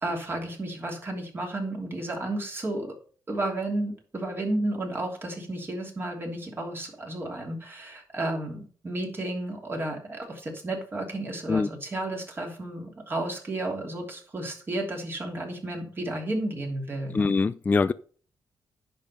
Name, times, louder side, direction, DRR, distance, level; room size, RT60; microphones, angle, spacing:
voice 1, 0.0-2.9 3.3-17.3, right 1 dB, 30° right, 3.1 m, -32 dB
voice 2, 17.1-17.9, left 4 dB, 25° left, 0.3 m, -23 dB
10.5 x 5.3 x 6.9 m
cardioid pair, 120°, 7 cm